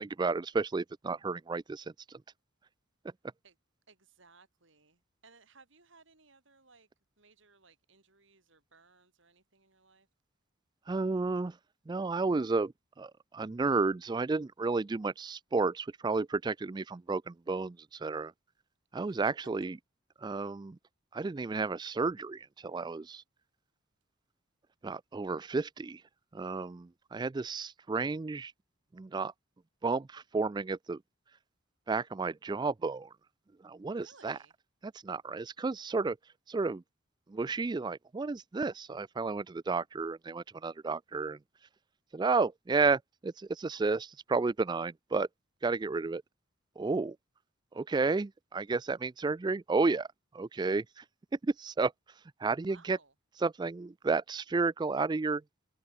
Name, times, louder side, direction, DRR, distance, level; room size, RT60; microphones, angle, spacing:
voice 1, 0.0-1.9 10.9-11.5 11.9-12.7 13.0-18.3 18.9-19.8 20.2-20.8 21.1-23.2 24.8-26.0 26.3-28.5 28.9-29.3 29.8-31.0 31.9-33.1 33.6-34.4 35.0-36.2 36.5-36.8 37.3-41.4 42.1-45.3 45.6-46.2 46.8-47.2 47.7-50.1 50.3-51.0 51.4-51.9 52.4-53.0 53.4-55.4, right 4 dB, 20° right, 0.3 m, -32 dB
voice 2, 3.9-6.9 7.2-10.1 19.1-19.3 33.9-34.5 52.7-53.1, right 4 dB, 60° right, 4.8 m, -61 dB
head